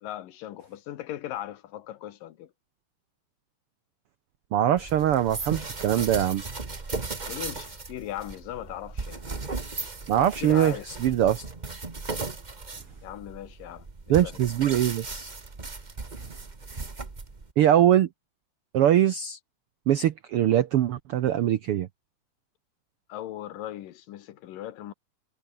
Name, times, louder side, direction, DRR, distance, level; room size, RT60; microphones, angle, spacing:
voice 1, 0.0-2.5 7.3-9.2 10.4-10.9 13.0-14.5 23.1-24.9, left 13 dB, 85° left, 3.0 m, -38 dB
voice 2, 4.5-6.4 10.1-10.7 11.0-11.4 14.1-15.3 17.6-18.1 18.7-19.4 19.9-21.9, right 11 dB, 85° right, 1.2 m, -22 dB
sound 1, 4.8-17.5, right 3 dB, 40° right, 0.6 m, -37 dB
omnidirectional pair, 3.8 m